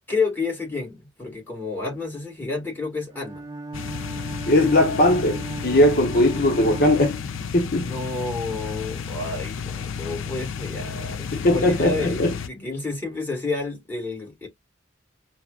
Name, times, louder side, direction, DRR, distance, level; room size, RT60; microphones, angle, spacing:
voice 1, 0.1-3.5 7.8-14.5, left 3 dB, 10° left, 1.8 m, -30 dB
Bowed string instrument, 3.1-7.7, right 2 dB, 20° right, 0.5 m, -36 dB
sound 1, 3.7-12.5, left 6 dB, 85° left, 0.5 m, -32 dB
voice 2, 4.5-7.2 7.5-7.9 11.3-12.3, left 1 dB, 50° left, 0.8 m, -19 dB
5.8 x 2.1 x 2.4 m
head